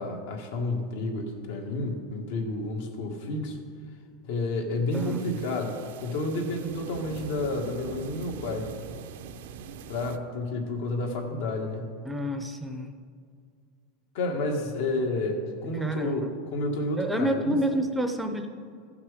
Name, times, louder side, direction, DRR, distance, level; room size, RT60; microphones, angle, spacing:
voice 1, 0.0-3.6 4.2-8.7 9.9-12.0 14.1-16.2 16.5-17.5, left 2 dB, 75° left, 2 dB, 1.6 m, -30 dB
sound 1, 4.9-10.2, right 6 dB, 80° right, 0.6 m, -43 dB
voice 2, 12.0-12.9 15.8-16.3 17.0-18.5, equal, 5° right, 6 dB, 0.5 m, -28 dB
15.0 x 5.9 x 4.9 m, 2.1 s
supercardioid pair, 160°, 0 cm